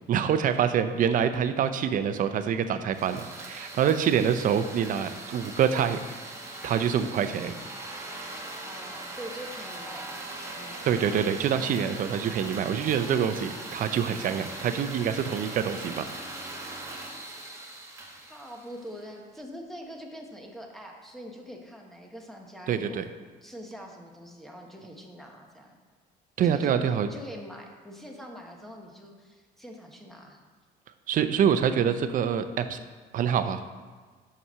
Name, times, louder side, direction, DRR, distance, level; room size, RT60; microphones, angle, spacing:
voice 1, 0.1-6.0 6.6-7.5 10.8-16.1 22.7-23.0 26.4-27.1 31.1-32.8 33.1-33.6, right 8 dB, 55° right, 10 dB, 0.6 m, -26 dB
sound 1, 2.9-19.1, right 2 dB, 15° right, 1.3 m, -40 dB
voice 2, 8.6-10.9 18.2-23.0 23.4-25.8 26.4-30.4, equal, ahead, 1 dB, 1.2 m, -44 dB
6.1 x 5.6 x 5.6 m, 1.4 s
cardioid pair, 110°, 17 cm